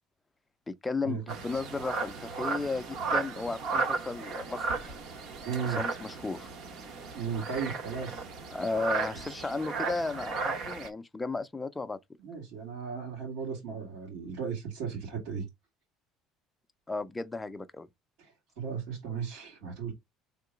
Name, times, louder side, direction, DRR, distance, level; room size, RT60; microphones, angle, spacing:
voice 1, 0.7-4.9 5.6-6.5 8.5-12.0 16.9-17.9, left 3 dB, 10° left, 0.3 m, -34 dB
sound 1, 1.3-10.9, right 4 dB, 50° right, 0.8 m, -35 dB
voice 2, 5.4-5.8 7.1-8.3 12.2-15.5 18.2-19.9, right 6 dB, 80° right, 2.5 m, -36 dB
3.7 x 2.9 x 4.8 m
cardioid pair, 175°, 0 cm